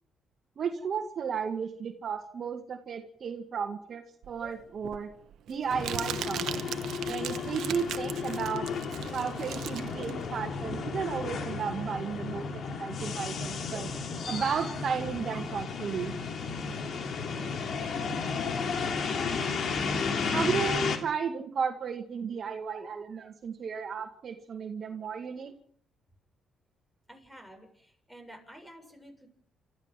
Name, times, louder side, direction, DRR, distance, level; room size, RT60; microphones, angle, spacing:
voice 1, 0.6-5.1 5.5-6.7 7.0-8.7 9.1-12.4 12.8-13.9 14.3-16.2 20.3-25.5, right 6 dB, 55° right, 6 dB, 2.0 m, -34 dB
Crumpling crinkling, 4.2-11.3, right 11 dB, 75° right, 1.2 m, -39 dB
sound 1, 5.7-21.0, left 5 dB, 60° left, 3.0 m, -33 dB
voice 2, 27.1-29.3, equal, 5° left, 5 dB, 7.3 m, -50 dB
29.0 x 14.0 x 7.5 m, 0.63 s
cardioid pair, 90°, 0 cm